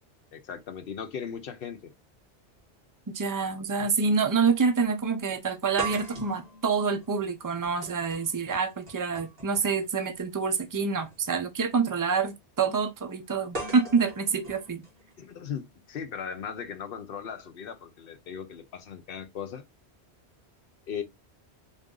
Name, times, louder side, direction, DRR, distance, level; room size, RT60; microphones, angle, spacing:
voice 1, 0.3-1.9 15.2-19.6 20.9-21.0, left 7 dB, 60° left, 0.8 m, -38 dB
sound 1, 2.6-2.7 3.8-4.0 4.3-4.4 5.8-9.8 11.0-11.2 13.5-15.6, right 2 dB, 55° right, 1.9 m, -40 dB
voice 2, 3.1-14.8, right 5 dB, 25° right, 0.4 m, -27 dB
4.0 x 2.5 x 3.7 m
omnidirectional pair, 1.2 m